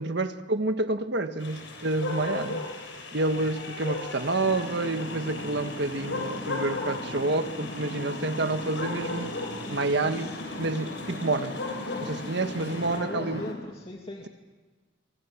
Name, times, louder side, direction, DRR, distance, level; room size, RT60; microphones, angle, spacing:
voice 1, 0.0-2.6 3.1-9.3 9.7-11.6 12.0-13.4, right 2 dB, 65° right, 8 dB, 1.5 m, -28 dB
sound 1, 1.4-13.0, left 3 dB, 80° left, 6.7 m, -37 dB
sound 2, 4.4-13.5, left 1 dB, 65° left, 5.5 m, -38 dB
voice 2, 12.9-14.3, left 1 dB, 30° left, 1 dB, 2.3 m, -38 dB
27.5 x 24.5 x 7.4 m, 1.3 s
head